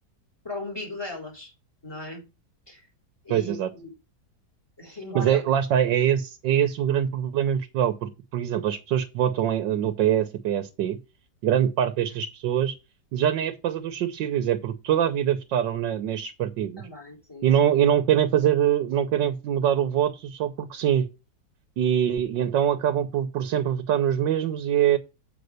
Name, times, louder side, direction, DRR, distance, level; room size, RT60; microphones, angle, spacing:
voice 1, 0.4-1.5 1.8-2.2 2.7-2.8 3.2-3.9 4.8-5.5 16.8-17.5, left 1 dB, 15° left, 4.3 m, -37 dB
voice 2, 3.3-3.7 5.1-11.0 11.4-12.8 13.1-16.9 17.4-21.1 21.8-25.0, right 10 dB, 85° right, 1.6 m, -24 dB
8.0 x 5.8 x 6.5 m
omnidirectional pair, 1.9 m